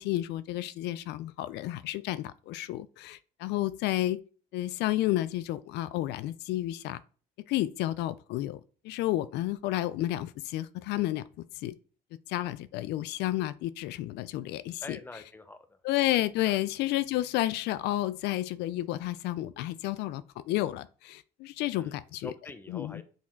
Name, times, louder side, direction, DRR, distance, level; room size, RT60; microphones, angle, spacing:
voice 1, 0.0-4.2 4.5-7.0 7.5-11.2 11.5-11.8 12.3-15.0 15.8-22.3 22.7-23.0, left 15 dB, 80° left, 0.4 m, -31 dB
voice 2, 14.8-15.8 16.4-16.6 21.7-22.0 22.2-23.0, left 2 dB, 10° left, 0.7 m, -45 dB
6.0 x 4.2 x 4.4 m
cardioid pair, 110°, 17 cm